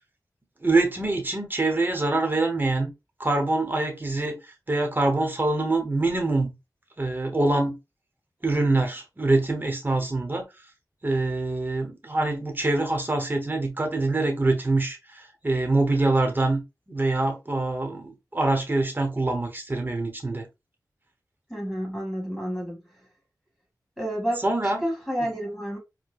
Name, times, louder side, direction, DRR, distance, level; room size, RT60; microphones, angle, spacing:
voice 1, 0.6-2.9 3.2-4.4 4.7-6.5 7.0-7.8 8.4-10.5 11.0-20.5 24.4-24.8, right 2 dB, 30° right, 1.0 m, -25 dB
voice 2, 21.5-22.8 24.0-25.8, equal, ahead, 1.8 m, -30 dB
4.6 x 2.2 x 2.4 m
wide cardioid pair, 95°, 7 cm